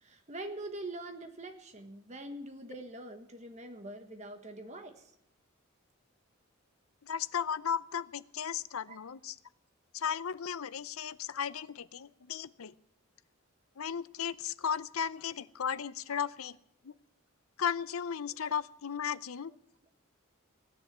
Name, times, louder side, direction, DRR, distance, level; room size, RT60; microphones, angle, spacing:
voice 1, 0.0-5.0 8.9-9.0, right 1 dB, 35° right, 6 dB, 1.5 m, -44 dB
voice 2, 7.0-9.4 9.9-12.7 13.8-16.6 16.8-16.9 17.6-19.5, left 7 dB, 85° left, 17 dB, 0.6 m, -35 dB
17.5 x 10.0 x 7.4 m, 0.77 s
head